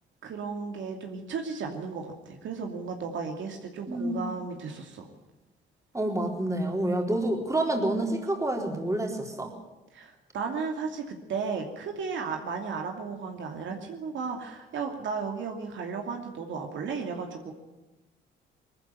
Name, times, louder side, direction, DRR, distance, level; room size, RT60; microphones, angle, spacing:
voice 1, 0.2-5.1 9.9-17.5, right 5 dB, 70° right, 3 dB, 2.7 m, -34 dB
voice 2, 3.9-4.2 5.9-9.5, right 1 dB, 15° right, 2 dB, 4.0 m, -28 dB
20.5 x 14.0 x 9.1 m, 1.1 s
cardioid pair, 90°, 20 cm